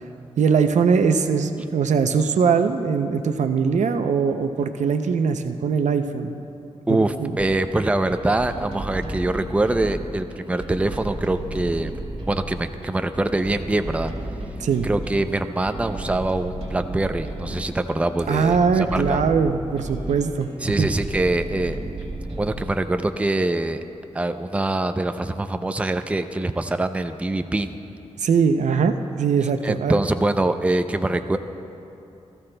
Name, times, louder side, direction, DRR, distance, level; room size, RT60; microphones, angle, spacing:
voice 1, 0.4-6.4 6.9-7.3 14.6-14.9 18.3-20.5 20.8-20.9 28.2-30.0, right 6 dB, 85° right, 8 dB, 0.5 m, -21 dB
voice 2, 6.9-11.9 12.3-14.1 14.8-19.2 20.6-21.8 22.4-23.8 24.1-27.8 29.6-31.4, right 2 dB, 10° right, 8 dB, 0.4 m, -24 dB
sound 1, 7.4-22.8, right 1 dB, 55° right, 2.1 m, -34 dB
18.5 x 14.0 x 2.2 m, 2.8 s
wide cardioid pair, 90°, 12 cm